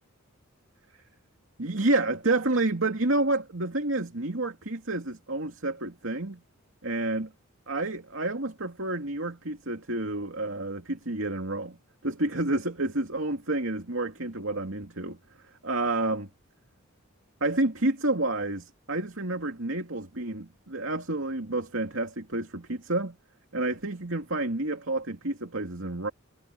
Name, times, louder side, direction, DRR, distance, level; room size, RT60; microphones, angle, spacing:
voice 1, 1.6-6.4 6.8-7.3 7.7-11.8 12.0-15.2 15.6-16.3 17.4-23.2 23.5-26.1, right 2 dB, 70° right, 2.7 m, -29 dB
head